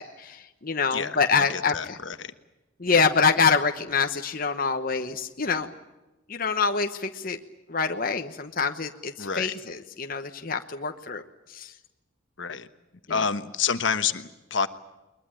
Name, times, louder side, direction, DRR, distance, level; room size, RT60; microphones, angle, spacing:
voice 1, 0.0-2.0 2.8-5.7 6.3-7.4 7.7-11.2 11.5-11.7 13.1-13.2, left 5 dB, 45° left, 5 dB, 1.1 m, -26 dB
voice 2, 0.9-2.3 9.2-9.5 12.4-12.7 13.1-14.7, left 6 dB, 65° left, 11 dB, 1.2 m, -28 dB
22.0 x 21.5 x 9.0 m, 1.1 s
head